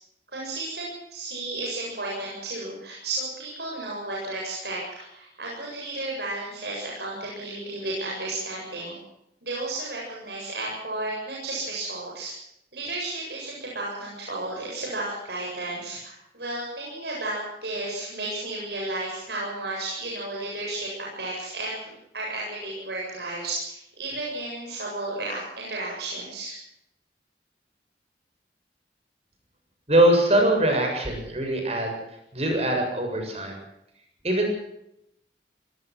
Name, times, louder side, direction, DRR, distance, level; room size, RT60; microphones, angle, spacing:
voice 1, 0.3-9.0 9.4-12.3 12.7-20.9 21.2-26.6, right 2 dB, 70° right, -4 dB, 7.9 m, -33 dB
voice 2, 29.9-31.9 32.3-33.6 34.2-34.5, right 1 dB, 35° right, 3 dB, 7.3 m, -22 dB
24.0 x 20.0 x 6.3 m, 0.79 s
head